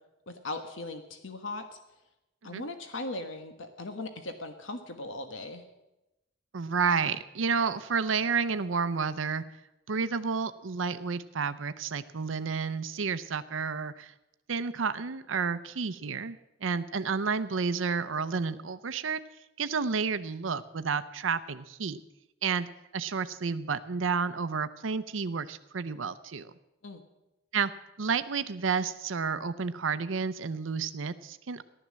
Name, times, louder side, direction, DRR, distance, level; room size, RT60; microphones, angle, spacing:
voice 1, 0.3-1.7 2.4-5.6 26.8-27.0, left 2 dB, 85° left, 7 dB, 1.3 m, -38 dB
voice 2, 6.5-9.4 9.9-14.1 14.5-19.2 19.6-22.0 22.4-22.7 22.9-26.5 27.5-27.7 28.0-31.6, right 5 dB, 85° right, 13 dB, 0.6 m, -30 dB
15.0 x 12.0 x 7.5 m, 0.94 s
head